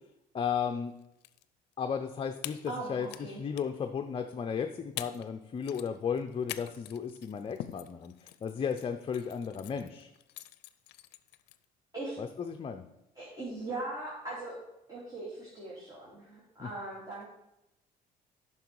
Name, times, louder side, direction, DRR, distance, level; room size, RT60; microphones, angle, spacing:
voice 1, 0.3-0.9 1.8-10.1 12.2-12.9 16.6-16.7, left 7 dB, 35° left, 6 dB, 0.6 m, -34 dB
sound 1, 1.0-1.4 1.7-1.8 2.4-3.2 3.5-3.8 4.6-4.7 5.0-5.3 5.6-11.6, left 14 dB, 80° left, 0.5 m, -45 dB
voice 2, 2.7-3.4 11.9-12.2 13.2-14.6 14.9-17.2, right 2 dB, 20° right, -6 dB, 2.7 m, -40 dB
9.3 x 6.0 x 4.7 m, 0.89 s
cardioid pair, 110°, 17 cm